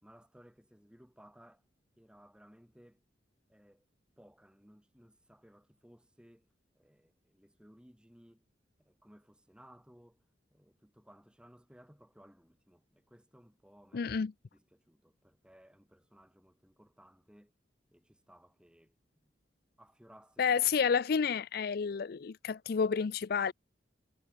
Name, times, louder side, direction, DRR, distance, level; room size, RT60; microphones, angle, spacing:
voice 1, 0.0-1.6 2.0-3.0 3.5-3.9 4.2-6.5 6.8-8.5 8.8-10.2 10.5-14.2 14.5-17.5 17.9-19.3 19.8-20.6, equal, 5° right, 3.9 m, -60 dB
voice 2, 13.9-14.3 20.4-23.5, left 6 dB, 55° left, 0.4 m, -30 dB
head